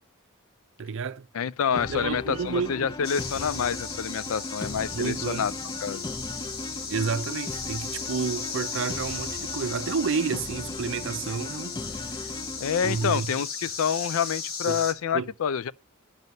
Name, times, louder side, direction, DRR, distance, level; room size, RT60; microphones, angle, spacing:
voice 1, 0.8-1.3 1.9-2.9 4.9-5.5 6.9-12.4 12.8-13.3 14.7-14.8 15.1-15.3, right 5 dB, 60° right, 0.5 m, -30 dB
voice 2, 1.3-5.5 5.8-6.0 12.6-15.7, left 7 dB, 70° left, 0.4 m, -27 dB
sound 1, 1.8-13.2, left 2 dB, 20° left, 0.5 m, -38 dB
sound 2, 3.0-14.9, left 5 dB, 45° left, 1.6 m, -36 dB
11.0 x 5.4 x 5.2 m
head